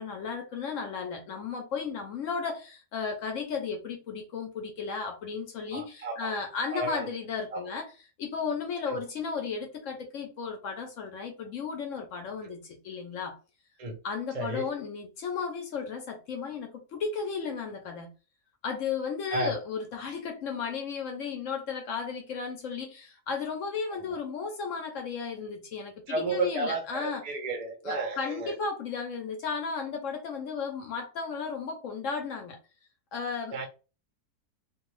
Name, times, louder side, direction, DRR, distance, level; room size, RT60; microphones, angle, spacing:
voice 1, 0.0-13.4 14.0-18.1 18.6-27.2 27.8-32.6 33.1-33.6, left 5 dB, 65° left, 0.8 m, -34 dB
voice 2, 5.7-6.3 6.7-7.1 7.5-7.6 8.9-9.0 12.4-12.5 13.8-13.9 14.3-14.7 19.3-19.5 24.0-24.1 26.1-28.5 33.5-33.7, right 3 dB, 50° right, 0.4 m, -32 dB
2.5 x 2.2 x 3.1 m
omnidirectional pair, 1.7 m